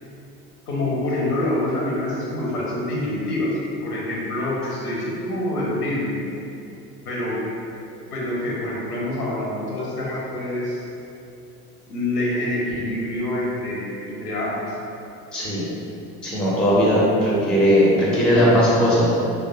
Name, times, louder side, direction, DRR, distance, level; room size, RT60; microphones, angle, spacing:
voice 1, 0.7-6.1 7.1-7.4 8.1-10.8 11.9-14.7, left 1 dB, 80° left, -4 dB, 0.7 m, -26 dB
voice 2, 15.3-15.7 16.2-19.1, equal, ahead, -6 dB, 0.4 m, -18 dB
3.1 x 2.1 x 2.6 m, 2.8 s
figure-of-eight pair, 60°, 46 cm